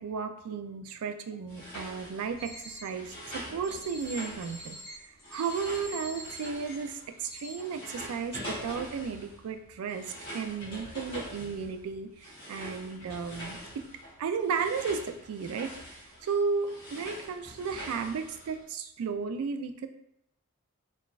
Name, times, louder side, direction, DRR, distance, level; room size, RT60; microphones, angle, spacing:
voice 1, 0.0-10.0 10.3-13.8 14.2-19.9, right 5 dB, 85° right, 7 dB, 0.3 m, -34 dB
sound 1, 1.5-7.2 7.5-18.6, equal, 25° left, 1.4 m, -44 dB
sound 2, 2.4-2.9 3.6-6.7 7.2-7.5, left 1 dB, 5° left, 1.1 m, -44 dB
3.8 x 2.4 x 2.3 m, 0.78 s
head